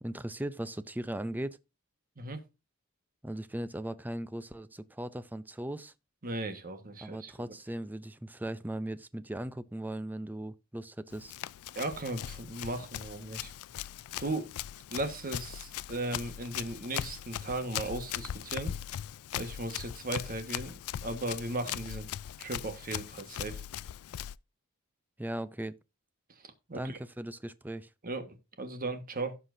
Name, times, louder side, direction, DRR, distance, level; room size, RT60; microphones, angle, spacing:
voice 1, 0.0-1.6 3.2-5.9 7.0-11.3 25.2-25.8 26.7-27.9, right 1 dB, 10° right, 0.5 m, -38 dB
voice 2, 6.2-7.5 11.7-13.5 14.2-14.5 14.9-18.7 19.3-22.1 22.4-23.6 26.4-27.0 28.0-29.4, right 2 dB, 40° right, 1.5 m, -37 dB
Run, 11.1-24.3, left 11 dB, 90° left, 0.4 m, -40 dB
16.5 x 5.8 x 2.7 m
head